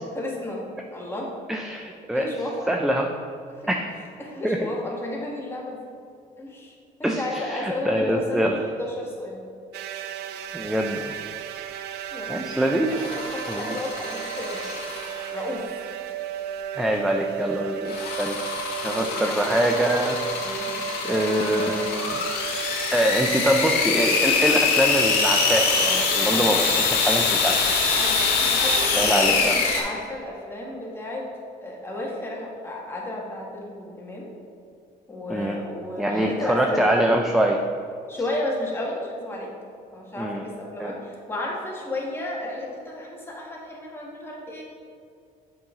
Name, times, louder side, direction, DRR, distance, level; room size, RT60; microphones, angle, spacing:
voice 1, 0.1-0.6 0.9-1.3 2.1-2.8 3.5-3.7 4.2-5.9 6.4-6.7 7.0-9.4 12.1-12.4 13.3-14.8 15.3-15.8 20.3-20.7 28.0-31.3 31.6-34.3 35.1-36.9 38.1-39.5 39.9-44.6, left 1 dB, 15° left, -3 dB, 1.7 m, -33 dB
voice 2, 1.5-3.1 3.7-3.9 4.4-4.7 7.0-8.6 10.5-11.1 12.3-12.9 13.5-13.8 14.6-14.7 16.8-18.4 18.8-20.2 21.0-22.2 22.9-27.6 29.0-29.6 35.3-35.6 36.0-37.6 40.2-40.4 40.8-40.9, right 1 dB, ahead, 2 dB, 0.4 m, -24 dB
sound 1, 9.7-26.8, right 9 dB, 75° right, 0.5 m, -35 dB
sound 2, 12.9-15.4 17.9-29.8, left 4 dB, 75° left, 1.5 m, -24 dB
7.4 x 5.5 x 3.7 m, 2.5 s
cardioid pair, 110°, 17 cm